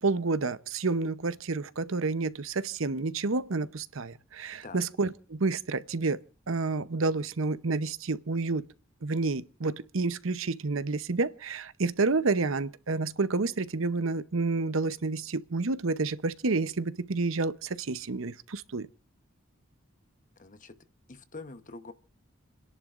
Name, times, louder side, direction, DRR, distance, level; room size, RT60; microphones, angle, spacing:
voice 1, 0.0-6.2 6.5-8.7 9.0-18.9, right 3 dB, 70° right, 0.8 m, -29 dB
voice 2, 20.4-20.8 21.1-21.9, left 3 dB, 40° left, 1.0 m, -45 dB
30.0 x 11.0 x 2.5 m
head